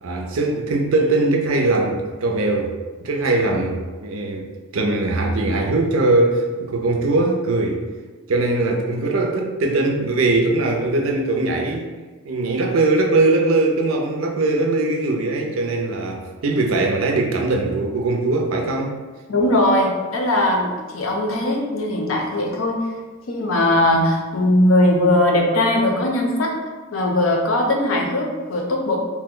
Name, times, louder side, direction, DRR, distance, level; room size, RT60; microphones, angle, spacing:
voice 1, 0.0-2.7 3.0-4.4 4.7-7.8 8.3-11.9 12.2-18.9, right 2 dB, 75° right, 2 dB, 0.5 m, -20 dB
voice 2, 19.3-22.8 23.3-26.5 26.9-29.0, left 1 dB, 70° left, 0 dB, 0.6 m, -19 dB
2.8 x 2.1 x 3.6 m, 1.3 s
head